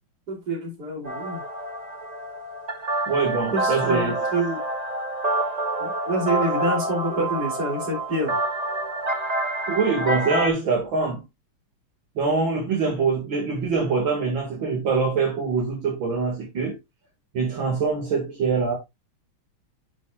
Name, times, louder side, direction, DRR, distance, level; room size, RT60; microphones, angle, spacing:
voice 1, 0.3-1.4 3.5-4.6 5.8-8.4, right 1 dB, 50° right, 3.5 m, -27 dB
sound 1, 1.1-10.5, right 1 dB, 25° right, 1.0 m, -27 dB
voice 2, 3.1-4.2 9.7-11.2 12.2-16.8 17.3-18.8, right 4 dB, 70° right, 2.7 m, -24 dB
10.5 x 5.5 x 2.4 m
omnidirectional pair, 2.2 m